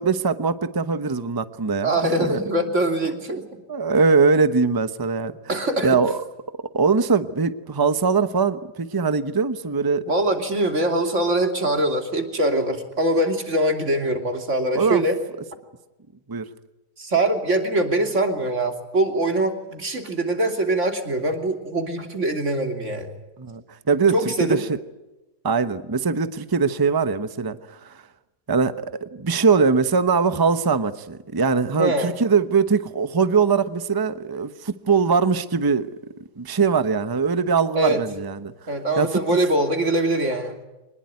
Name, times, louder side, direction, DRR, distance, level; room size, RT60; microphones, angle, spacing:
voice 1, 0.0-1.9 2.2-2.4 3.7-5.3 5.8-6.2 6.7-10.0 14.7-15.0 16.3-16.4 23.4-24.1 24.4-24.6 25.4-28.0 28.5-28.7 29.0-35.9 36.4-38.5 39.0-39.2, right 5 dB, 20° right, 11 dB, 0.8 m, -21 dB
voice 2, 1.8-3.6 5.5-6.0 10.1-15.2 17.0-23.1 24.1-24.7 31.8-32.2 37.7-38.0 38.7-40.6, right 1 dB, 45° right, 5 dB, 3.3 m, -23 dB
25.0 x 20.5 x 9.4 m, 1.0 s
omnidirectional pair, 1.7 m